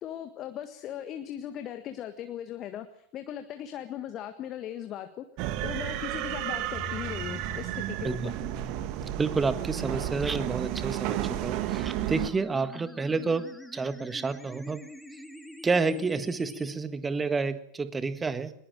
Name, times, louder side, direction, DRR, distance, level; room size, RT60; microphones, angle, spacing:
voice 1, 0.0-5.3 5.6-8.3, left 10 dB, 35° left, 8 dB, 1.6 m, -38 dB
sound 1, 5.4-12.3, right 13 dB, 40° right, 1.8 m, -32 dB
sound 2, 6.7-16.7, left 1 dB, 5° left, 2.5 m, -45 dB
voice 2, 9.2-13.4 13.7-14.8 15.6-18.5, right 4 dB, 15° right, 12 dB, 1.6 m, -29 dB
21.0 x 21.0 x 7.6 m, 0.68 s
figure-of-eight pair, 90°, 0 cm